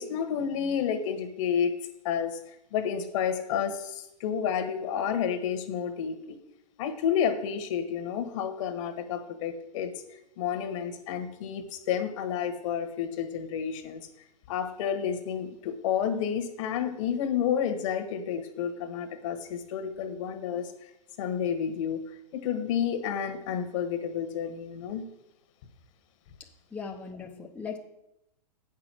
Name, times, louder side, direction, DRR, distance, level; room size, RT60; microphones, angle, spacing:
voice 1, 0.0-1.7 2.0-6.3 6.8-9.9 10.4-14.0 14.5-20.9 21.2-22.0 22.3-25.0, left 8 dB, 50° left, 8 dB, 1.4 m, -30 dB
voice 2, 26.7-27.8, left 5 dB, 5° left, -1 dB, 0.8 m, -38 dB
8.5 x 6.1 x 6.2 m, 0.84 s
hypercardioid pair, 135°, 21 cm